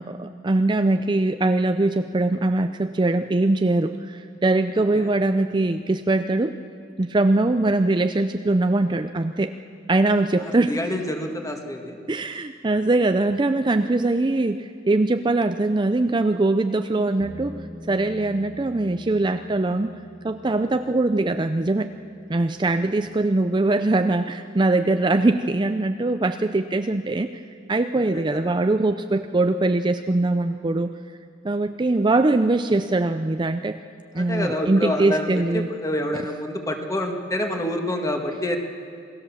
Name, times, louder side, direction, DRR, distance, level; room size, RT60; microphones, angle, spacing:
voice 1, 0.0-6.6 7.0-9.5 9.9-10.7 12.1-17.6 17.9-19.9 20.2-21.9 22.3-27.4 27.7-30.9 31.4-33.8 34.1-35.7, right 2 dB, 25° right, 8 dB, 0.5 m, -22 dB
voice 2, 4.8-5.1 10.4-12.0 28.1-28.6 34.1-38.6, left 1 dB, 20° left, 3 dB, 1.8 m, -28 dB
Bass guitar, 17.2-23.5, left 1 dB, 5° left, 1.4 m, -45 dB
27.5 x 18.5 x 7.2 m, 2.4 s
head